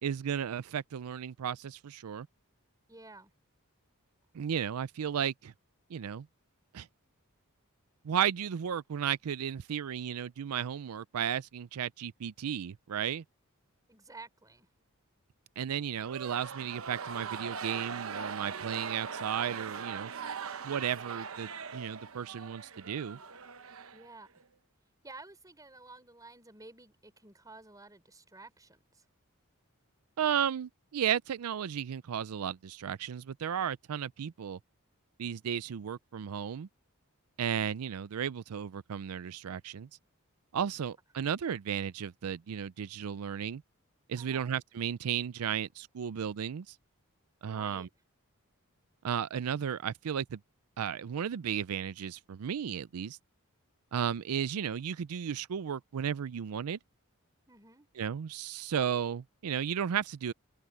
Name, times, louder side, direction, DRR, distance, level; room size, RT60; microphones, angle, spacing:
voice 1, 0.0-2.3 4.3-5.5 5.9-6.3 6.7-6.9 8.0-13.2 15.6-20.1 20.6-23.2 30.2-34.6 35.2-36.7 37.4-39.9 40.5-43.6 44.1-46.8 47.4-47.9 49.0-50.4 50.8-53.2 53.9-56.8 58.0-60.3, right 8 dB, 85° right, 0.4 m, -34 dB
voice 2, 2.9-3.3 13.9-14.7 23.9-24.4 25.0-29.0 44.2-44.5 47.4-47.9 57.5-57.9, right 3 dB, 15° right, 4.0 m, -52 dB
sound 1, 16.0-24.4, right 6 dB, 65° right, 1.0 m, -41 dB
open air
head